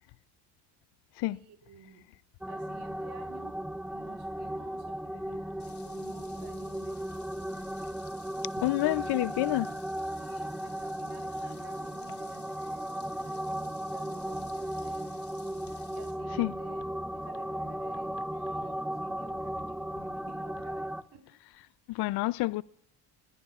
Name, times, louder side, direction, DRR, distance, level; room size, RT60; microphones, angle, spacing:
voice 1, 1.3-2.1 2.5-3.6 3.9-7.0 8.7-9.4 10.2-15.3 15.9-16.8 17.1-21.3 21.9-22.1, right 6 dB, 70° right, 4.1 m, -54 dB
sound 1, 2.4-21.0, right 1 dB, ahead, 0.6 m, -36 dB
sound 2, 5.6-16.1, left 6 dB, 40° left, 3.8 m, -56 dB
voice 2, 8.6-9.7 16.4-16.5 21.9-22.6, left 19 dB, 70° left, 0.5 m, -28 dB
27.0 x 21.0 x 2.4 m
cardioid pair, 120°, 41 cm